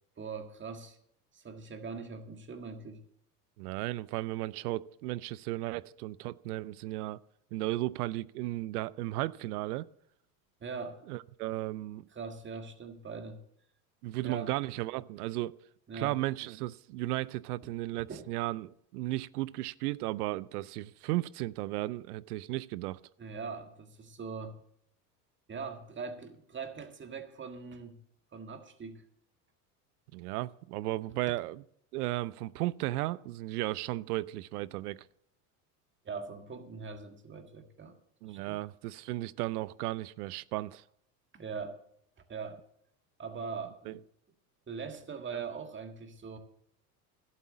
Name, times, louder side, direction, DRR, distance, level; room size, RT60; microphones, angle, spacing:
voice 1, 0.2-1.0 1.3-3.0 10.6-11.0 12.1-13.4 14.2-14.5 15.9-16.1 18.1-18.3 23.2-24.6 25.5-28.0 28.3-29.0 36.1-38.0 38.2-38.6 41.3-41.8 42.3-42.6 43.2-44.0 44.7-46.4, right 5 dB, 25° right, 1.8 m, -41 dB
voice 2, 3.6-7.2 7.5-9.8 11.1-12.0 14.0-15.6 15.9-23.0 30.1-31.6 31.9-35.0 38.2-40.8 43.9-44.0, right 17 dB, 80° right, 0.5 m, -35 dB
11.5 x 8.3 x 6.2 m
hypercardioid pair, 90°, 46 cm